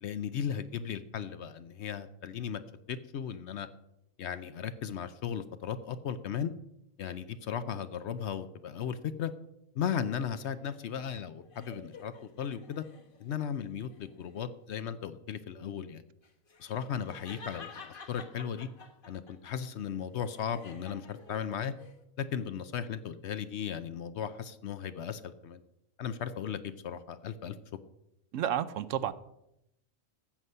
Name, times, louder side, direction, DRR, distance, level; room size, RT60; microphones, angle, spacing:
voice 1, 0.0-2.6 2.9-3.7 4.2-6.5 7.0-9.3 9.7-12.8 13.2-16.0 16.6-18.7 19.1-21.7 22.2-25.6 26.0-27.6, left 8 dB, 60° left, 12 dB, 0.8 m, -36 dB
sound 1, 10.7-13.3 13.8-14.5 16.2-19.3 19.7-22.0, left 4 dB, 45° left, 1.3 m, -51 dB
voice 2, 28.3-29.1, right 10 dB, 70° right, 15 dB, 0.9 m, -31 dB
13.5 x 8.0 x 5.5 m, 0.84 s
omnidirectional pair, 1.4 m